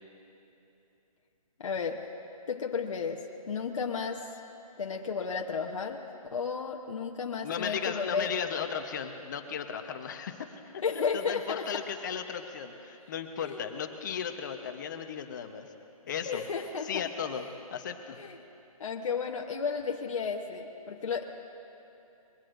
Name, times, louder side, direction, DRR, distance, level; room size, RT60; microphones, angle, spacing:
voice 1, 1.6-2.0 2.5-4.3 4.8-6.0 6.3-8.3 10.8-11.7 13.4-13.6 16.2-17.0 18.2-18.4 18.8-21.2, left 5 dB, 60° left, 1 dB, 0.9 m, -33 dB
voice 2, 7.4-10.4 10.6-10.8 11.1-15.7 16.1-16.4 16.8-18.2, left 7 dB, 30° left, 6 dB, 0.9 m, -36 dB
22.0 x 18.0 x 2.6 m, 2.9 s
hypercardioid pair, 160°, 19 cm